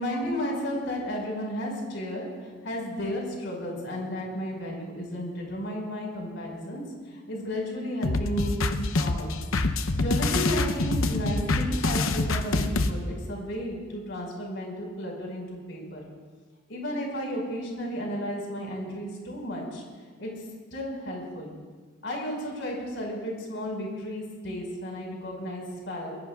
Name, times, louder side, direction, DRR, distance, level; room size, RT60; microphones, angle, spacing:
voice 1, 0.0-6.8 7.1-9.3 10.0-16.0 16.7-19.8 20.2-20.3 20.7-21.5 22.0-26.2, equal, 65° left, -1 dB, 5.4 m, -33 dB
sound 1, 8.0-12.9, left 2 dB, 85° left, 0.8 m, -26 dB
26.5 x 20.5 x 2.5 m, 1.5 s
head